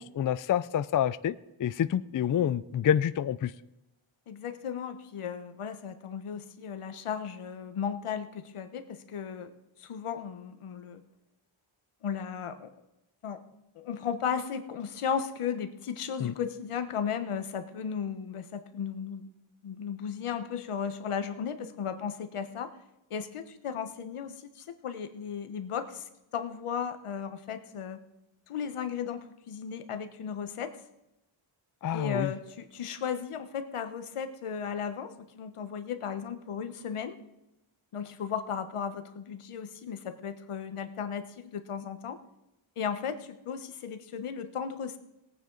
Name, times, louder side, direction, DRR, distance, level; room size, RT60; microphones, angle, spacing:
voice 1, 0.0-3.5 16.2-16.3 31.8-32.3, left 9 dB, 45° left, 16 dB, 0.4 m, -28 dB
voice 2, 4.3-9.5 9.8-11.0 12.0-12.7 13.2-13.4 13.7-19.3 19.6-22.7 23.1-26.0 26.3-28.0 28.5-30.8 31.9-37.2 37.9-42.2 42.8-45.0, left 7 dB, 90° left, 9 dB, 1.1 m, -35 dB
19.0 x 9.2 x 3.9 m, 0.92 s
wide cardioid pair, 110°, 50 cm